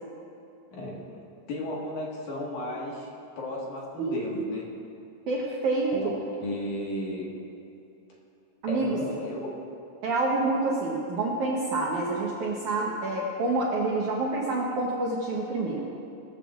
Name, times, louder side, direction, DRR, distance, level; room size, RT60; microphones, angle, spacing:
voice 1, 0.7-1.0 1.5-3.1 3.4-4.7 5.9-7.3 8.7-9.5, left 1 dB, 55° left, -3 dB, 2.5 m, -34 dB
voice 2, 5.3-5.9 8.6-9.0 10.0-15.8, right 2 dB, 80° right, -3 dB, 1.7 m, -27 dB
20.5 x 14.0 x 2.5 m, 2.7 s
omnidirectional pair, 5.3 m